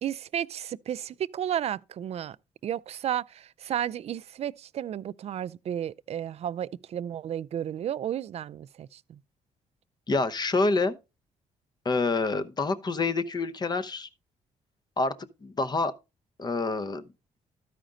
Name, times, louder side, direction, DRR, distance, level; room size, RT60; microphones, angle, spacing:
voice 1, 0.0-2.4 2.6-9.2, right 10 dB, 50° right, 0.4 m, -33 dB
voice 2, 10.1-11.0 11.8-14.1 15.0-15.1 15.4-15.9 16.4-17.0, left 3 dB, 30° left, 0.8 m, -27 dB
12.5 x 5.0 x 3.7 m
cardioid pair, 80°, 14 cm